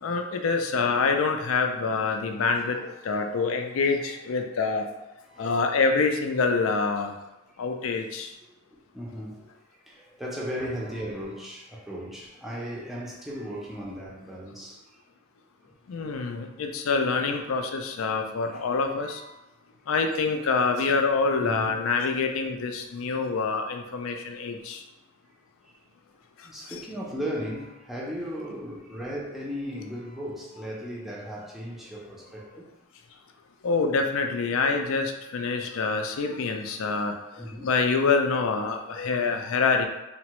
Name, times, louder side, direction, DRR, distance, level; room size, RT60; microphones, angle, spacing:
voice 1, 0.0-4.9 5.4-7.1 7.6-8.3 15.9-19.2 19.9-24.8 33.6-37.1 37.6-39.9, left 4 dB, 70° left, 4 dB, 0.4 m, -26 dB
voice 2, 5.2-5.6 8.4-8.5 8.9-9.5 9.9-14.8 18.4-18.6 19.0-19.4 21.3-21.9 26.4-32.7 37.4-37.7 39.2-39.5, equal, ahead, -4 dB, 0.5 m, -36 dB
3.4 x 2.0 x 2.9 m, 1.0 s
head